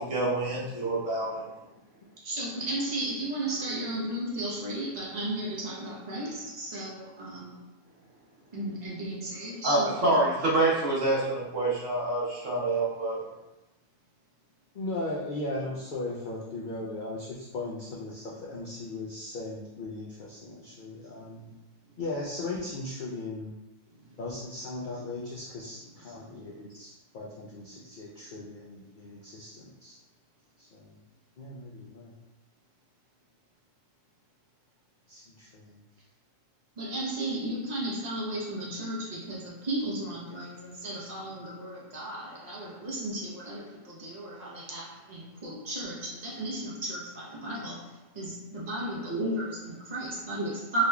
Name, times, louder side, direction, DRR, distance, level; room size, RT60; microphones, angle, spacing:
voice 1, 0.0-1.4 9.6-13.2, right 2 dB, 65° right, -6 dB, 1.3 m, -27 dB
voice 2, 2.2-7.6 8.5-10.3 36.8-50.9, right 1 dB, 35° right, -5 dB, 0.8 m, -34 dB
voice 3, 14.7-21.5 22.0-23.5 24.2-30.0 30.6-31.0 31.4-32.1 35.1-35.8, left 2 dB, 75° left, -4 dB, 0.4 m, -38 dB
3.7 x 3.0 x 2.2 m, 0.94 s
omnidirectional pair, 1.4 m